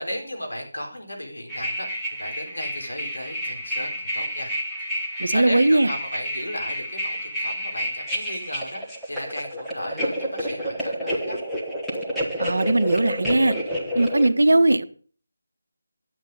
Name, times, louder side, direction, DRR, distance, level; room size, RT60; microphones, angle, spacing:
voice 1, 0.0-4.5 5.3-8.8 9.1-11.4, equal, 80° left, 2 dB, 4.0 m, -35 dB
sound 1, 1.5-14.3, equal, ahead, 1.4 m, -30 dB
voice 2, 5.2-5.9 12.4-13.5 13.9-14.8, right 2 dB, 65° right, 10 dB, 0.8 m, -19 dB
11.0 x 8.1 x 5.3 m, 0.44 s
figure-of-eight pair, 160°, 0 cm